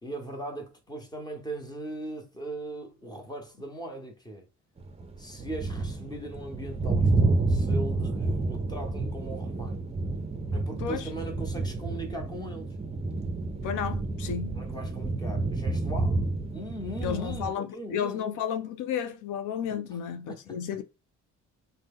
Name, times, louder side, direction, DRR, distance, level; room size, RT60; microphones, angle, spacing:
voice 1, 0.0-4.4 5.2-9.8 10.5-12.7 14.5-16.2 16.5-18.4 19.6-20.0 20.3-20.6, right 1 dB, 15° left, 1.0 m, -39 dB
sound 1, 4.8-17.5, right 3 dB, 20° right, 0.6 m, -29 dB
voice 2, 10.8-11.1 13.6-14.6 17.0-20.8, left 8 dB, 85° left, 0.5 m, -32 dB
2.8 x 2.2 x 3.5 m
cardioid pair, 90°, 30 cm